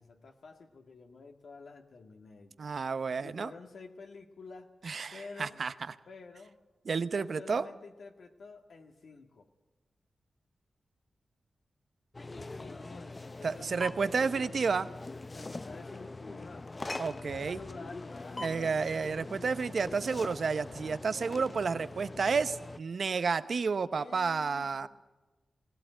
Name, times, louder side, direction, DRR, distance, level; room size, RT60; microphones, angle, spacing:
voice 1, 0.0-2.7 3.2-4.7 5.1-5.7 6.1-6.6 7.1-9.5 12.3-14.4 15.3-16.7 17.1-18.8 24.0-24.9, left 4 dB, 80° left, 3 dB, 2.0 m, -49 dB
voice 2, 2.6-3.5 4.8-5.7 6.9-7.7 13.4-14.9 17.0-17.6 18.4-24.9, right 5 dB, 65° right, 13 dB, 0.9 m, -31 dB
sound 1, 12.1-22.8, left 2 dB, 30° left, 0.6 m, -43 dB
20.5 x 17.0 x 9.0 m, 1.1 s
cardioid pair, 75°, 0 cm